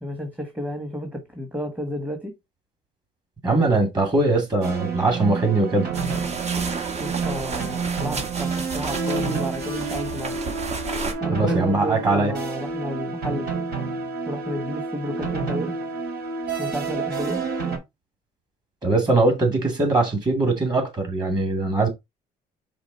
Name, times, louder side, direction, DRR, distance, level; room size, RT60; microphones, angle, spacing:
voice 1, 0.0-2.3 7.0-10.4 11.2-13.5 14.3-15.8 16.6-17.4, equal, 10° right, 1.4 m, -31 dB
voice 2, 3.4-5.9 11.3-12.3 18.8-21.9, right 2 dB, 25° right, 2.5 m, -21 dB
sound 1, 4.6-17.8, right 4 dB, 70° right, 4.5 m, -29 dB
sound 2, 5.9-11.1, right 4 dB, 40° right, 1.7 m, -32 dB
5.1 x 3.7 x 5.4 m
cardioid pair, 110°, 17 cm